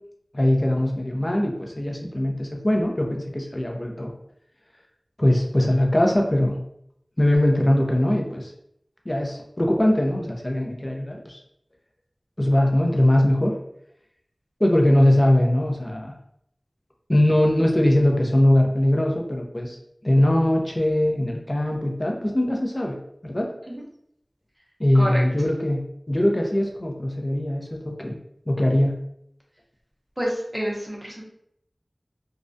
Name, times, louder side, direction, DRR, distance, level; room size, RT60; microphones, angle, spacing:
voice 1, 0.3-4.1 5.2-6.6 7.2-8.5 9.1-11.4 12.4-13.5 14.6-16.1 17.1-19.8 20.0-23.0 23.2-23.5 24.8-28.2 28.5-29.0, left 1 dB, 40° left, 1 dB, 0.5 m, -21 dB
voice 2, 30.2-31.2, equal, 15° right, -3 dB, 0.7 m, -28 dB
2.3 x 2.1 x 2.5 m, 0.74 s
wide cardioid pair, 45°, 0 cm